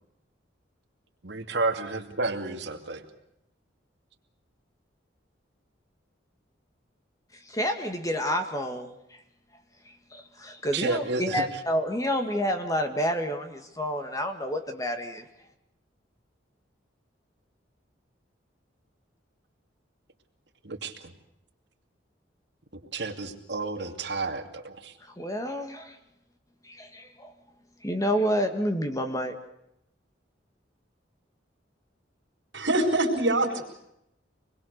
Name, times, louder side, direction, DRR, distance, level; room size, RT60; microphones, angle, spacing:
voice 1, 1.2-3.0 10.7-11.5 20.6-21.1 22.9-24.9, right 3 dB, 65° right, 4 dB, 2.5 m, -31 dB
voice 2, 7.5-8.9 10.1-15.3 25.2-26.0 26.6-27.3 27.8-29.4, equal, 20° left, 6 dB, 1.8 m, -29 dB
voice 3, 32.5-33.6, right 1 dB, 80° right, -4 dB, 4.1 m, -24 dB
25.5 x 21.0 x 6.6 m, 0.81 s
head